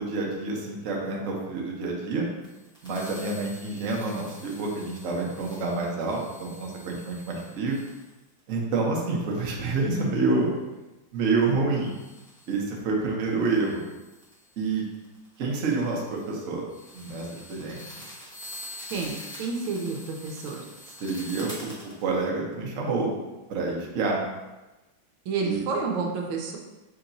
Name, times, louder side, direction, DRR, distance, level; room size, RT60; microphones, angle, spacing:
voice 1, 0.0-2.3 2.8-7.8 8.5-10.5 11.1-12.0 12.5-13.8 14.6-14.8 15.4-16.6 16.9-17.8 21.0-21.7 22.0-23.1 23.5-24.2 25.4-25.7, right 3 dB, 55° right, -2 dB, 0.9 m, -28 dB
sound 1, 2.4-9.3 11.8-22.2, left 1 dB, 5° left, 0.5 m, -45 dB
voice 2, 19.4-20.6 25.3-26.6, right 4 dB, 80° right, 1 dB, 1.4 m, -29 dB
6.3 x 2.9 x 2.6 m, 1.1 s
omnidirectional pair, 2.2 m